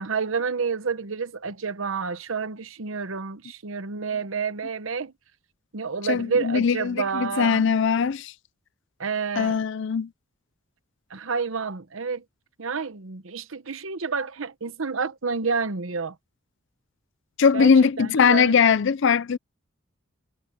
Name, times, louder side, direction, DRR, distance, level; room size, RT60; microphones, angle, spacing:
voice 1, 0.0-5.1 5.7-7.6 9.0-9.6 11.1-12.2 12.6-16.1 17.5-17.7 18.0-18.6, right 5 dB, 75° right, 1.0 m, -29 dB
voice 2, 6.1-8.3 9.4-10.1 17.4-19.4, left 6 dB, 60° left, 0.5 m, -20 dB
head